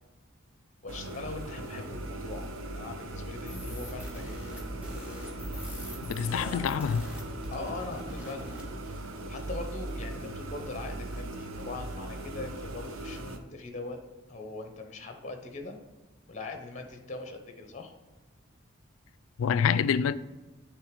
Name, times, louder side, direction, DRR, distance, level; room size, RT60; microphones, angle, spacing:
voice 1, 0.8-4.3 6.3-6.6 7.5-14.0 14.3-15.8 16.3-17.9, left 3 dB, 35° left, 0.7 m, -41 dB
sound 1, 0.9-13.4, right 2 dB, 85° right, 0.6 m, -39 dB
sound 2, 3.4-8.7, equal, 5° right, 1.0 m, -42 dB
voice 2, 6.0-7.0 19.4-20.1, left 7 dB, 85° left, 0.3 m, -26 dB
6.4 x 3.2 x 5.0 m
head